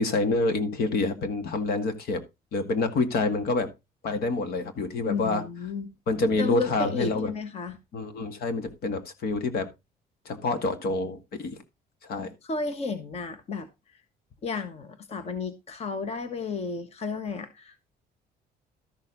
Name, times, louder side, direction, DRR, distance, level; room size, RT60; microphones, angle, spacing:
voice 1, 0.0-2.2 2.5-3.7 4.0-5.4 6.1-7.3 7.9-9.7 10.3-11.6 12.0-12.3, left 3 dB, 70° left, 2.0 m, -27 dB
voice 2, 5.1-5.9 6.4-7.8 12.4-14.0 14.4-17.8, left 4 dB, 40° left, 1.4 m, -33 dB
13.0 x 6.6 x 3.9 m
cardioid pair, 135°, 17 cm